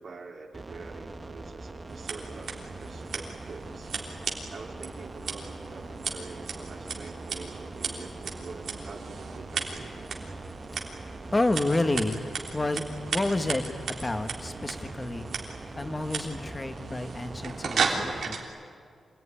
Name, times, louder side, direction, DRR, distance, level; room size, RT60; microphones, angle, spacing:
voice 1, 0.0-3.9 4.5-10.1, right 4 dB, 60° right, 0 dB, 3.2 m, -45 dB
sound 1, 0.5-18.2, right 2 dB, 25° right, 1.2 m, -43 dB
Scissors, 1.9-18.4, right 5 dB, 80° right, 3.3 m, -36 dB
voice 2, 11.3-12.2 12.5-12.8 13.1-15.3 15.8-18.4, left 2 dB, 20° left, 8 dB, 1.4 m, -29 dB
26.5 x 18.0 x 10.0 m, 2.2 s
wide cardioid pair, 130°, 0 cm